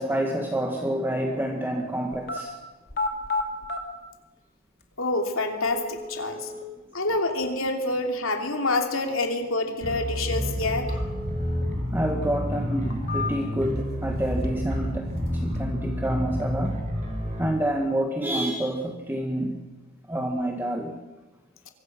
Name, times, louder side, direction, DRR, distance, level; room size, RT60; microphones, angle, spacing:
voice 1, 0.0-2.6 6.2-6.5 11.9-16.8 17.4-19.6 20.1-21.0, right 1 dB, 10° right, 2 dB, 1.7 m, -28 dB
sound 1, 2.1-2.4 2.9-3.8 4.8-4.9 5.6-6.6 10.6-11.6 12.0-12.1 12.7-13.6 14.0-14.7 15.0-15.6, left 3 dB, 50° left, 2.7 m, -33 dB
voice 2, 5.0-6.5 6.9-10.9, left 2 dB, 85° left, 4 dB, 3.1 m, -27 dB
sound 2, 9.8-17.4, equal, 40° right, 6.3 m, -29 dB
25.0 x 23.0 x 6.1 m, 1.1 s
head